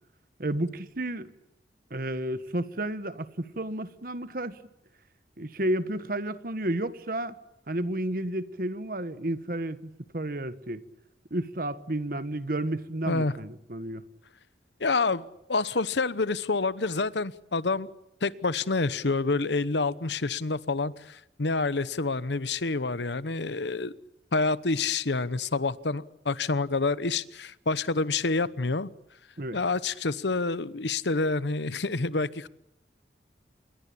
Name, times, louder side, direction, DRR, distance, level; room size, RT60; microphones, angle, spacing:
voice 1, 0.4-1.3 1.9-4.6 5.4-7.3 7.7-10.8 11.3-14.0 29.4-29.6, right 1 dB, 50° right, 1.4 m, -31 dB
voice 2, 14.8-15.2 15.5-17.9 18.2-23.9 24.3-28.9 29.5-32.5, left 3 dB, 80° left, 1.0 m, -28 dB
27.5 x 22.0 x 8.6 m
head